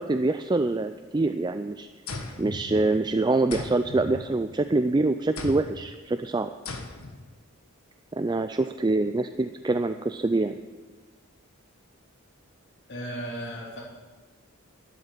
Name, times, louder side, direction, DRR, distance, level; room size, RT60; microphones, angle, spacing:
voice 1, 0.0-1.9 2.4-6.5 8.1-10.6, right 2 dB, 20° right, 9 dB, 0.4 m, -25 dB
sound 1, 2.1-3.1 3.5-4.8 5.4-5.9 6.7-7.3, left 3 dB, 85° left, 1.6 m, -38 dB
voice 2, 12.9-13.8, right 1 dB, 55° left, -3 dB, 3.9 m, -35 dB
12.0 x 8.0 x 9.9 m, 1.4 s
head